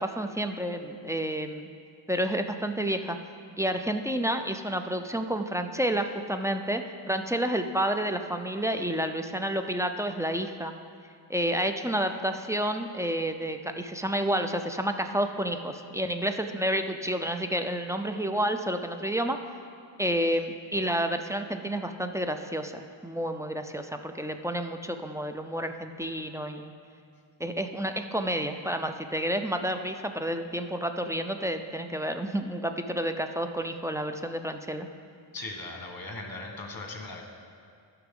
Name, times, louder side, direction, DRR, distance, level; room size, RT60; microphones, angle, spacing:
voice 1, 0.0-1.7 2.1-3.2 3.6-10.7 11.3-19.4 20.0-26.7 27.4-34.9, right 1 dB, 5° right, 6 dB, 0.4 m, -30 dB
voice 2, 35.3-37.2, left 2 dB, 50° left, 3 dB, 1.3 m, -38 dB
14.0 x 5.9 x 3.7 m, 2.2 s
wide cardioid pair, 65°, 47 cm